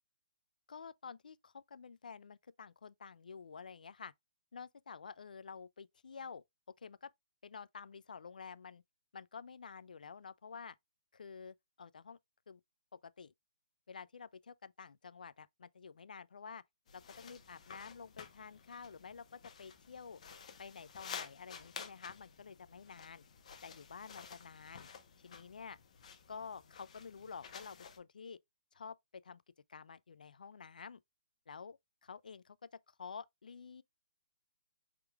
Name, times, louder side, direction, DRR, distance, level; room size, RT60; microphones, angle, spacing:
voice 1, 0.7-4.1 4.5-6.4 6.8-7.1 7.4-8.8 9.1-10.7 11.1-12.2 12.5-12.6 13.0-13.3 13.9-16.6 16.9-20.2 20.6-23.2 23.6-24.9 25.2-25.8 26.3-28.4 28.7-29.4 29.7-31.0 31.5-33.8, left 5 dB, 85° left, 0.3 m, -50 dB
sound 1, 16.9-28.0, left 6 dB, 55° left, 1.0 m, -52 dB
4.5 x 3.6 x 2.3 m
hypercardioid pair, 155°, 4 cm